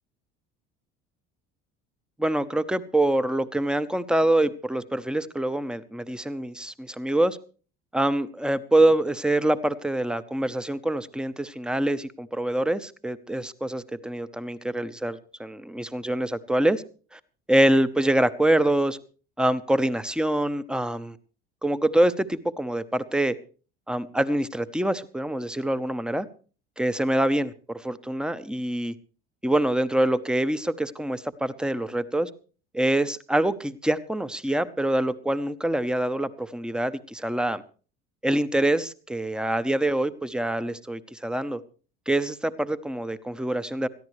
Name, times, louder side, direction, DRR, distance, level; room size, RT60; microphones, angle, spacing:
voice 1, 2.2-7.4 7.9-16.8 17.1-17.2 17.5-19.0 19.4-21.2 21.6-23.4 23.9-26.3 26.8-28.9 29.4-32.3 32.7-37.6 38.2-41.6 42.1-43.9, right 1 dB, 5° right, 14 dB, 0.8 m, -25 dB
21.0 x 14.0 x 3.2 m, 0.38 s
hypercardioid pair, 75°, 32 cm